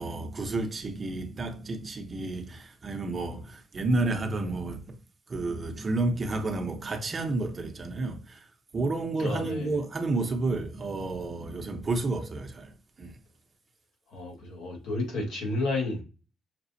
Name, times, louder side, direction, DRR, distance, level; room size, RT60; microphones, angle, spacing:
voice 1, 0.0-5.0 5.3-8.4 8.7-13.1, right 2 dB, 35° right, 0.9 m, -31 dB
voice 2, 9.2-9.8 14.1-16.0, left 2 dB, 80° left, 1.7 m, -31 dB
5.9 x 2.4 x 2.7 m
cardioid pair, 90°, 0 cm